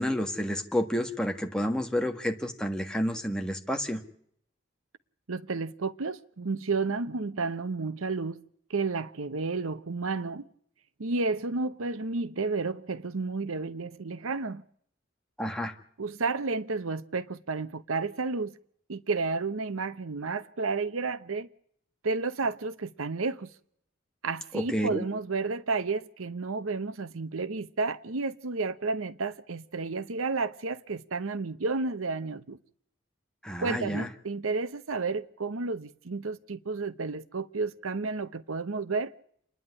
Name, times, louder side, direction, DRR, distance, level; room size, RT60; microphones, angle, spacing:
voice 1, 0.0-4.0 15.4-15.7 24.5-25.0 33.4-34.1, equal, 5° left, 1.7 m, -30 dB
voice 2, 5.3-8.4 8.7-10.4 11.0-14.6 16.0-18.5 18.9-21.5 22.0-23.5 24.2-32.6 33.6-39.1, right 4 dB, 90° right, 0.9 m, -31 dB
28.5 x 10.5 x 9.7 m
head